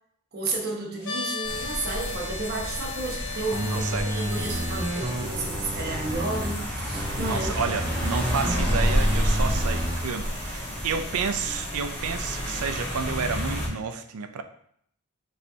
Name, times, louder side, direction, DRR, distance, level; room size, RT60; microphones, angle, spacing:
voice 1, 0.3-7.5, right 2 dB, 45° right, -1 dB, 1.0 m, -32 dB
sound 1, 1.0-5.1, left 4 dB, 60° left, 0.8 m, -36 dB
sound 2, 1.4-13.7, equal, 10° left, 1.5 m, -30 dB
sound 3, 3.5-6.5 6.9-10.0 10.4-10.5, right 1 dB, 20° right, 0.5 m, -31 dB
voice 2, 3.6-4.1 7.2-14.4, right 5 dB, 75° right, 8 dB, 0.5 m, -30 dB
5.2 x 3.2 x 2.7 m, 0.67 s
head